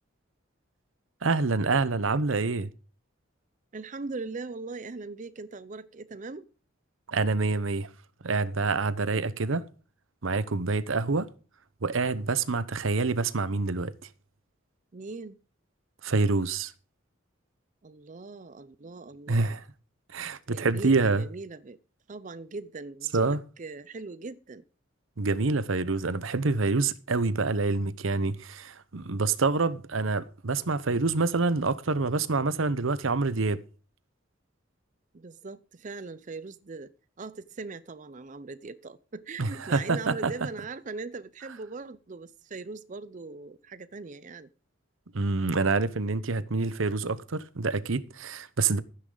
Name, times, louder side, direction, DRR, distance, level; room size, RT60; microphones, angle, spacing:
voice 1, 1.2-2.7 7.1-7.9 8.2-9.6 10.2-11.3 11.8-13.9 16.0-16.7 19.3-19.6 20.1-21.2 23.1-23.4 25.2-33.6 39.4-40.3 45.1-48.8, right 3 dB, 80° right, 0.9 m, -27 dB
voice 2, 3.7-6.5 14.9-15.4 17.8-19.6 20.5-21.8 22.1-24.6 35.1-44.5, right 3 dB, 40° right, 0.5 m, -40 dB
14.5 x 9.9 x 3.9 m
head